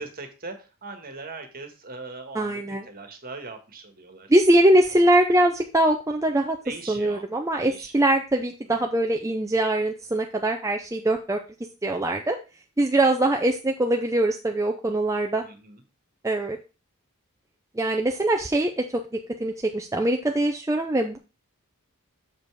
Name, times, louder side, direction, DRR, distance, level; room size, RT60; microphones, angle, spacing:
voice 1, 0.0-4.3 6.6-7.2 7.6-8.1 8.7-8.9 15.4-15.8, right 3 dB, 40° right, 6 dB, 1.5 m, -40 dB
voice 2, 2.3-2.8 4.3-6.6 6.9-11.4 11.8-12.4 12.8-15.4 16.2-16.6 17.8-21.2, right 1 dB, 15° right, 3 dB, 0.5 m, -22 dB
6.8 x 5.3 x 4.7 m, 0.31 s
head